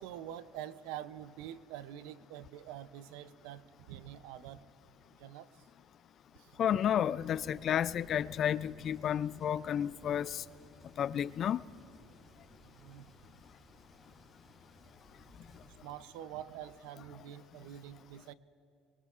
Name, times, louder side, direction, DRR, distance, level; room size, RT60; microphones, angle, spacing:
voice 1, 0.0-4.6 5.2-5.5 6.4-6.8 12.6-13.1 15.8-18.3, right 11 dB, 80° right, 0.5 m, -46 dB
voice 2, 6.6-10.4 11.0-11.6, left 9 dB, 45° left, 0.3 m, -31 dB
Thunder, 7.2-15.7, equal, 5° left, 3.0 m, -58 dB
23.5 x 22.5 x 2.5 m
supercardioid pair, 105°, 0 cm